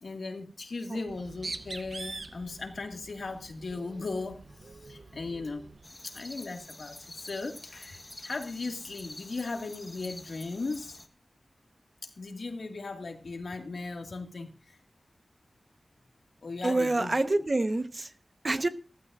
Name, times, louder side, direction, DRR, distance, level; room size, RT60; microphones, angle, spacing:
voice 1, 0.0-5.6 6.0-11.0 12.0-14.5 16.4-17.5, left 3 dB, 85° left, 4 dB, 1.9 m, -37 dB
Bird, 1.0-5.9, right 3 dB, 65° right, 0.8 m, -44 dB
sound 1, 5.8-11.1, left 2 dB, 30° left, 1.2 m, -47 dB
voice 2, 16.6-18.1 18.4-18.7, right 2 dB, 45° right, 9 dB, 1.1 m, -27 dB
15.0 x 14.0 x 2.5 m, 0.37 s
wide cardioid pair, 85°, 0 cm